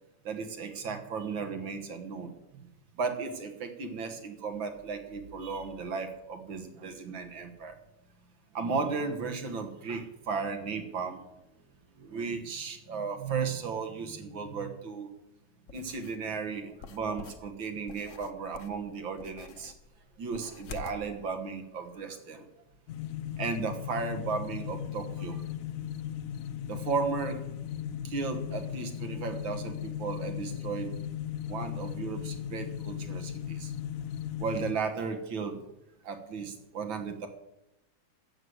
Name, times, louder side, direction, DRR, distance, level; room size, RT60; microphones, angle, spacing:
voice 1, 0.2-2.7 3.0-7.8 8.5-11.3 12.0-15.1 15.7-19.7 20.2-22.5 23.4-25.4 26.7-27.4 28.0-31.0 31.5-33.7 34.4-35.6 36.0-37.3, right 5 dB, 80° right, 7 dB, 2.2 m, -35 dB
sound 1, 15.7-16.2 16.8-21.0, left 5 dB, 55° left, 1.0 m, -47 dB
sound 2, 22.9-34.7, left 10 dB, 85° left, 0.7 m, -37 dB
12.5 x 8.0 x 7.9 m, 0.91 s
omnidirectional pair, 2.1 m